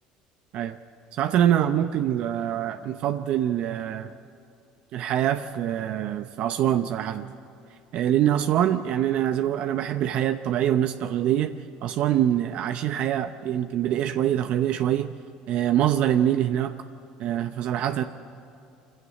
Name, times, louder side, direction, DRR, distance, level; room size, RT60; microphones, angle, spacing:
voice 1, 1.1-4.1 4.9-7.3 7.9-15.1 15.5-16.8 17.2-18.0, right 11 dB, 60° right, 9 dB, 0.7 m, -24 dB
25.0 x 16.0 x 9.6 m, 2.6 s
supercardioid pair, 110°, 2 cm